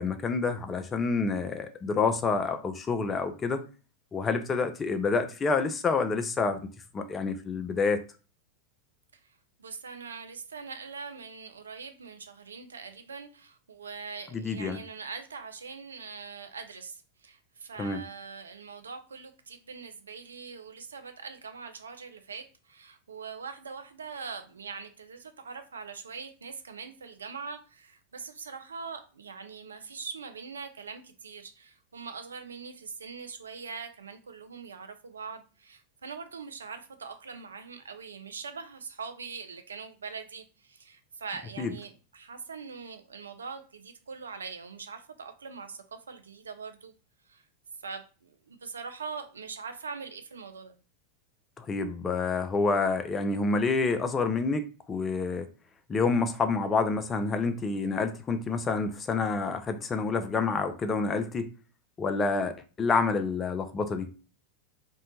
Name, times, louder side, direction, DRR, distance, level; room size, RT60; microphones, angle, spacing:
voice 1, 0.0-3.6 4.1-6.6 6.9-8.0 14.3-14.8 17.8-18.0 41.6-41.7 51.6-55.5 55.9-61.5 62.0-64.1, left 4 dB, 20° left, 0.3 m, -28 dB
voice 2, 9.1-46.9 47.3-47.4 47.8-50.7, right 5 dB, 70° right, 0.3 m, -42 dB
2.6 x 2.1 x 2.8 m
figure-of-eight pair, 90°, 0 cm